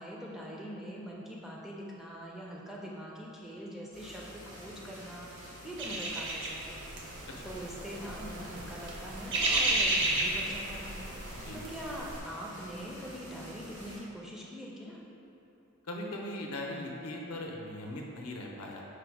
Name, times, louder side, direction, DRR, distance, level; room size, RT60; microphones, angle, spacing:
voice 1, 0.0-6.9 7.4-11.0 11.5-15.0, equal, ahead, -4 dB, 0.3 m, -43 dB
sound 1, 3.9-14.0, equal, 70° right, 1.2 m, -49 dB
sound 2, 5.8-12.2, right 2 dB, 55° right, 0.5 m, -33 dB
voice 2, 11.3-11.6 15.8-18.8, left 1 dB, 75° left, -1 dB, 0.6 m, -39 dB
4.9 x 2.1 x 4.5 m, 2.9 s
head